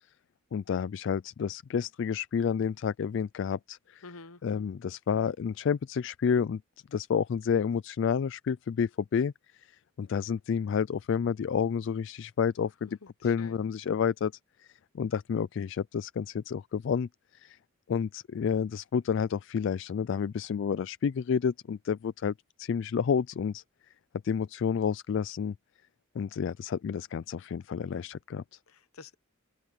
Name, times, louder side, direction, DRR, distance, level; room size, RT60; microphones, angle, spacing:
voice 1, 0.5-4.0 4.4-6.6 6.9-9.3 10.0-14.3 14.7-17.6 17.9-23.6 24.2-25.6 26.2-28.6, left 7 dB, 55° left, 0.3 m, -30 dB
voice 2, 4.0-4.7 13.0-13.6 28.7-29.1, left 3 dB, 85° left, 1.0 m, -49 dB
open air
head